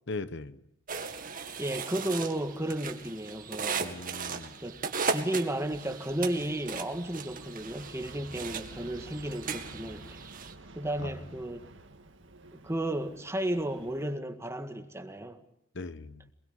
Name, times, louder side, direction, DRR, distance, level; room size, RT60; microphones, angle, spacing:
voice 1, 0.1-0.6 3.7-4.6 11.0-11.2 15.7-16.2, left 3 dB, 60° left, 1.1 m, -39 dB
sound 1, 0.9-10.5, right 5 dB, 45° right, 2.1 m, -37 dB
voice 2, 1.6-4.0 4.6-10.2 10.8-11.7 12.5-15.4, right 1 dB, 15° right, 1.9 m, -33 dB
Aircraft, 6.1-14.1, right 2 dB, 65° right, 2.1 m, -50 dB
27.0 x 21.0 x 8.8 m
head